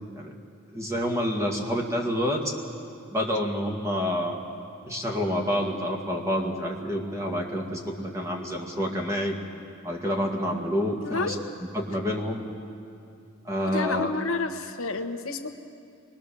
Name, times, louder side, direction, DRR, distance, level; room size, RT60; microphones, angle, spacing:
voice 1, 0.7-2.5 3.1-4.4 4.9-9.4 9.8-11.4 11.7-12.4 13.4-14.1, equal, 15° right, 0 dB, 1.9 m, -28 dB
voice 2, 11.0-11.4 13.7-15.5, left 3 dB, 80° left, 6 dB, 1.2 m, -30 dB
23.5 x 20.0 x 6.9 m, 2.5 s
head